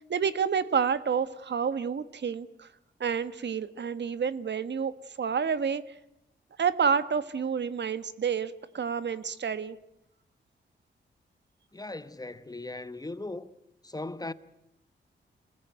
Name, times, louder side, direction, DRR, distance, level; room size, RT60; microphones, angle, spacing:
voice 1, 0.1-2.7 3.0-5.8 6.6-9.8, right 6 dB, 60° right, 1.4 m, -29 dB
voice 2, 11.7-13.5 13.8-14.3, left 2 dB, 20° left, 1.1 m, -38 dB
26.5 x 20.0 x 9.3 m
wide cardioid pair, 95°, 20 cm